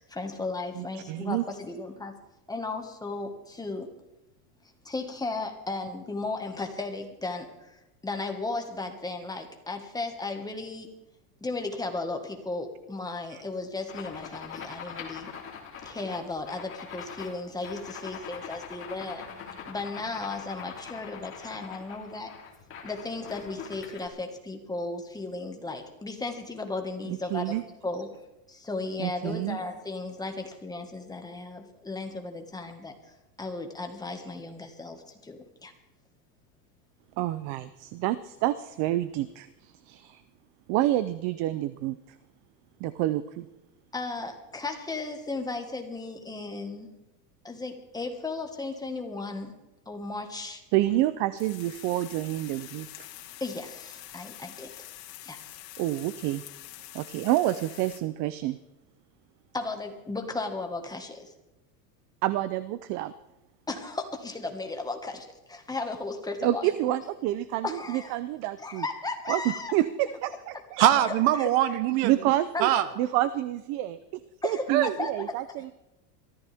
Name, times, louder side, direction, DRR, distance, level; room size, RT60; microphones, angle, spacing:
voice 1, 0.0-2.1 2.5-3.9 4.8-10.9 11.4-15.3 15.8-19.3 19.7-22.3 22.8-28.1 28.5-32.9 33.4-35.7 43.9-46.9 47.4-49.5 49.8-50.6 53.4-54.7 55.2-55.4 59.5-61.3 63.7-66.7 67.6-68.1 68.6-69.7 71.4-71.5 74.4-75.1, left 3 dB, 10° left, 4 dB, 1.6 m, -35 dB
voice 2, 0.8-1.5 13.3-13.4 27.1-27.6 29.0-29.6 37.2-40.2 40.7-42.0 42.8-43.5 50.7-53.1 55.8-56.4 56.9-58.6 62.2-63.1 66.4-68.8 69.3-70.8 72.0-75.7, right 14 dB, 35° right, 15 dB, 0.5 m, -28 dB
sound 1, 13.9-24.1, left 6 dB, 25° left, 3.2 m, -43 dB
sound 2, 51.4-58.0, left 14 dB, 70° left, 2.3 m, -46 dB
voice 3, 70.8-72.2 72.6-72.9 74.7-74.9, right 12 dB, 55° right, 12 dB, 1.3 m, -22 dB
22.5 x 14.5 x 3.5 m, 0.94 s
supercardioid pair, 140°, 49 cm